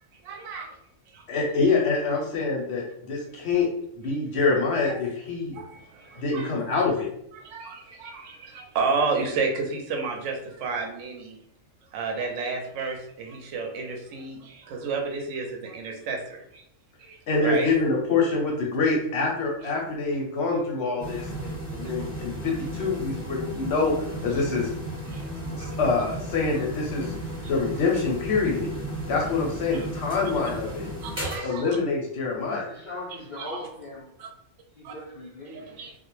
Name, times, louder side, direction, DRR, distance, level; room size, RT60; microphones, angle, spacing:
voice 1, 0.2-0.7 1.1-1.2 4.8-5.0 5.5-6.8 7.3-11.4 11.9-16.6 17.0-17.7 21.8-21.9 25.1-25.8 29.7-29.9 31.0-31.8 33.4-33.6 34.2-34.3 34.8-34.9 35.5-35.9, right 4 dB, 65° right, 2 dB, 0.8 m, -32 dB
voice 2, 1.3-3.7 4.0-5.5 6.2-7.1 17.3-23.9 24.2-24.7 25.5-27.1 27.5-28.7 29.1-30.9 31.4-32.6, left 4 dB, 60° left, -1 dB, 0.7 m, -25 dB
sound 1, 21.0-31.4, right 1 dB, 20° right, 1.0 m, -34 dB
voice 3, 32.4-34.1 34.7-35.8, left 2 dB, 80° left, -7 dB, 0.4 m, -38 dB
2.3 x 2.1 x 3.0 m, 0.74 s
omnidirectional pair, 1.5 m